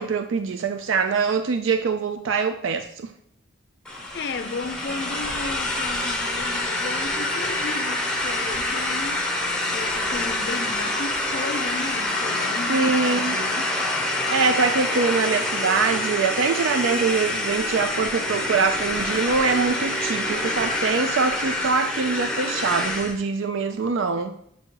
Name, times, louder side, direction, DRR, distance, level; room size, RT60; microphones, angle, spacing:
voice 1, 0.0-3.1 12.7-13.4 14.3-24.3, right 4 dB, 80° right, 0.4 m, -23 dB
sound 1, 3.9-23.2, left 1 dB, 5° left, 0.7 m, -26 dB
voice 2, 4.1-9.3 9.7-13.7, left 3 dB, 55° left, 0.4 m, -34 dB
7.7 x 2.8 x 4.6 m
head